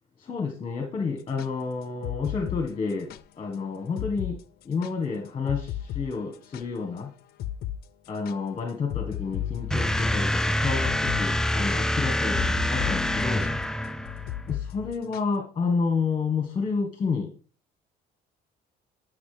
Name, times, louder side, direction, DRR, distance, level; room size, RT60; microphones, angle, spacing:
voice 1, 0.2-4.4 4.6-7.1 8.1-13.5 14.5-17.3, left 5 dB, 35° left, 3 dB, 1.4 m, -30 dB
sound 1, 1.2-3.2 3.5-3.6 4.0-4.3 4.6-7.0 7.4-7.8 8.1-15.4, left 11 dB, 65° left, 0.5 m, -35 dB
sound 2, 9.7-14.4, left 1 dB, 5° left, 0.4 m, -26 dB
9.8 x 6.2 x 3.3 m, 0.39 s
cardioid pair, 110°, 17 cm